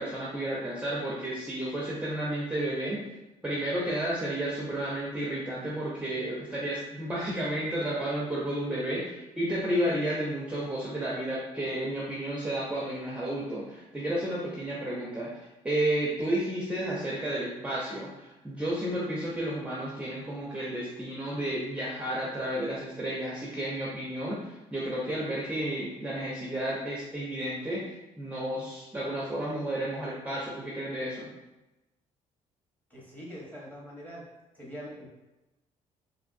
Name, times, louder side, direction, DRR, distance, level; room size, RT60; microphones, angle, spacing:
voice 1, 0.0-3.0 3.4-27.8 28.2-31.3, right 1 dB, 10° right, -6 dB, 0.6 m, -32 dB
voice 2, 32.9-34.3 34.5-35.1, equal, 10° left, -5 dB, 1.1 m, -43 dB
3.5 x 2.5 x 2.5 m, 1.0 s
cardioid pair, 115°, 14 cm